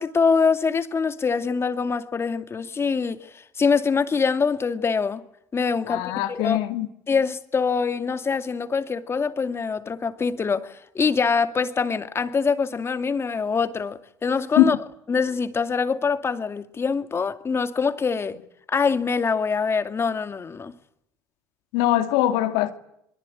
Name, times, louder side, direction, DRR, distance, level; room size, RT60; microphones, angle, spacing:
voice 1, 0.0-5.2 5.5-6.6 7.1-14.8 15.1-18.4 18.7-20.7, left 5 dB, 30° left, 2.3 m, -24 dB
voice 2, 5.9-6.9 14.6-14.8 21.7-22.7, left 13 dB, 75° left, 2.3 m, -21 dB
27.5 x 23.5 x 8.6 m
supercardioid pair, 85°, 9 cm